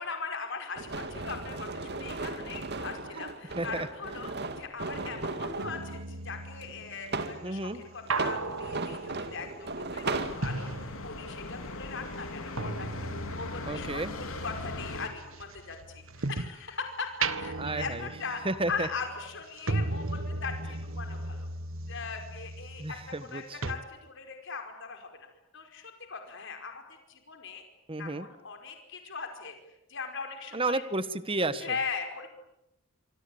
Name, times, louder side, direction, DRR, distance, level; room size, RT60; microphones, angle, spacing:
voice 1, 0.0-18.4 18.7-21.5 21.9-23.0 23.3-25.1 25.5-26.8 27.1-27.6 28.0-29.6 29.9-30.8 31.6-32.3, left 5 dB, 60° left, 5 dB, 5.1 m, -39 dB
sound 1, 0.8-5.8 6.6-7.4 8.1-10.4, right 3 dB, 50° right, 2.3 m, -36 dB
voice 2, 3.5-3.9 7.4-7.8 13.7-14.2 17.6-18.1 18.4-18.9 22.8-23.8 27.9-28.3 30.5-31.8, right 2 dB, 25° right, 14 dB, 1.4 m, -32 dB
sound 2, 5.6-11.6 11.8-16.7 17.1-23.4 23.6-23.7, right 3 dB, 70° right, 1.6 m, -37 dB
sound 3, 10.0-15.1, left 2 dB, 75° left, 3.6 m, -40 dB
27.0 x 25.0 x 8.8 m, 0.90 s
head